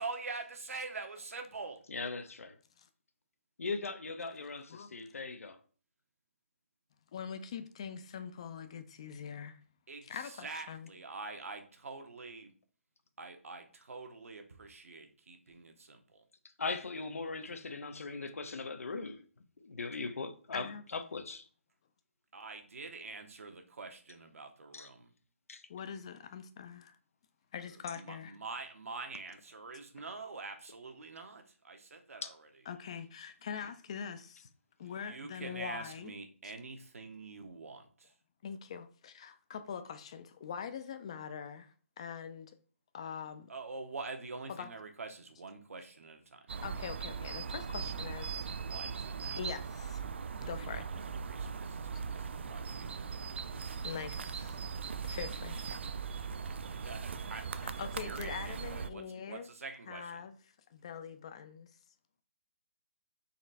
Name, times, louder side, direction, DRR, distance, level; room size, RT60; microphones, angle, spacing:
voice 1, 0.0-1.8 9.9-12.5 13.2-16.2 22.3-25.1 27.7-32.5 34.8-38.1 43.5-46.5 48.5-49.4 50.7-50.8 51.1-54.0 54.3-54.6 56.1-60.3, right 3 dB, 80° right, 1.0 m, -46 dB
voice 2, 1.9-2.6 3.6-5.6 16.6-19.3 19.6-21.5 24.7-24.9 25.5-25.6 32.2-32.3, left 4 dB, 85° left, 0.7 m, -39 dB
voice 3, 7.1-9.6 10.1-10.9 20.5-20.8 25.7-27.0 27.5-28.3 32.7-34.5 34.8-36.1 38.4-42.5 42.9-43.5 44.6-44.7 46.6-48.5 49.4-50.0 50.4-50.8 53.8-54.5 55.0-55.6 57.6-59.5 59.9-60.3 60.7-61.7, left 7 dB, 25° left, 0.3 m, -43 dB
sound 1, 46.5-58.9, right 6 dB, 55° right, 0.3 m, -39 dB
4.1 x 3.1 x 4.0 m
hypercardioid pair, 170°, 7 cm